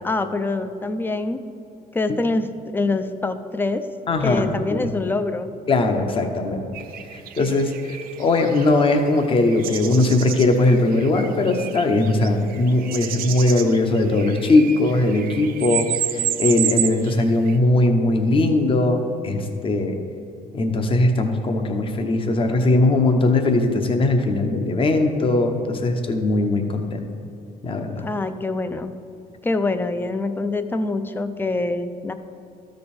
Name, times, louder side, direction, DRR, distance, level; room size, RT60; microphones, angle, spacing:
voice 1, 0.0-1.4 1.9-3.9 4.2-5.5 28.0-28.9 29.4-32.1, left 2 dB, 10° left, 10 dB, 0.5 m, -25 dB
voice 2, 4.1-4.4 4.8-4.9 5.7-6.6 7.1-20.0 20.5-27.0 27.6-28.0, left 2 dB, 35° left, 5 dB, 0.9 m, -20 dB
sound 1, 6.7-17.6, right 10 dB, 60° right, 0.6 m, -30 dB
13.0 x 5.2 x 4.3 m, 2.8 s
cardioid pair, 115°, 16 cm